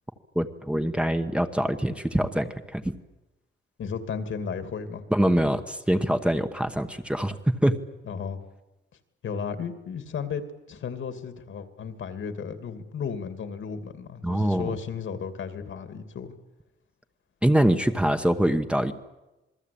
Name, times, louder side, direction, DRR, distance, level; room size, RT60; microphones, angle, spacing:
voice 1, 0.3-3.0 5.1-7.7 14.2-14.7 17.4-18.9, right 1 dB, 5° right, 7 dB, 1.1 m, -24 dB
voice 2, 3.8-5.0 8.0-8.4 9.2-10.4 10.7-16.3, left 6 dB, 75° left, 9 dB, 2.6 m, -34 dB
27.5 x 21.0 x 8.6 m, 1.0 s
wide cardioid pair, 175°, 21 cm